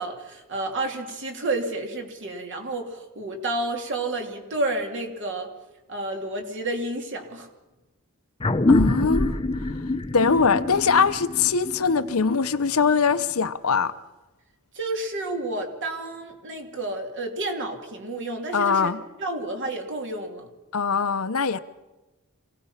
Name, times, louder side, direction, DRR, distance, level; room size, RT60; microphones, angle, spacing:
voice 1, 0.0-5.5 5.9-7.5 14.7-18.9 19.2-20.5, right 2 dB, 55° right, 3.1 m, -30 dB
sound 1, 8.4-13.3, left 2 dB, 25° left, 0.8 m, -25 dB
voice 2, 8.7-9.4 10.1-13.9 18.5-19.0 20.7-21.6, left 5 dB, 70° left, 0.9 m, -22 dB
27.0 x 18.0 x 5.8 m
head